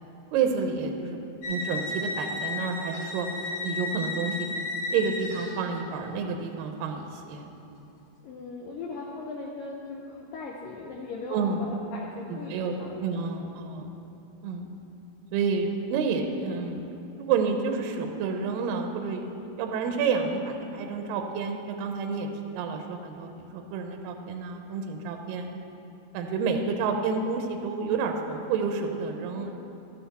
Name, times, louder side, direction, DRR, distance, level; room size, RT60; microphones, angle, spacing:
voice 1, 0.3-1.2 1.5-3.3 3.6-4.5 4.9-7.5 11.3-11.6 12.3-12.7 13.0-13.9 14.4-14.7 15.3-16.8 17.2-19.2 19.6-22.3 22.6-25.5 26.1-29.5, right 5 dB, 80° right, 4 dB, 2.1 m, -29 dB
sound 1, 1.4-5.9, left 2 dB, 55° left, 3.6 m, -33 dB
voice 2, 8.2-13.3 13.6-13.8 29.4-29.5, left 3 dB, 80° left, -2 dB, 2.1 m, -39 dB
12.5 x 8.0 x 4.1 m, 2.8 s
omnidirectional pair, 4.5 m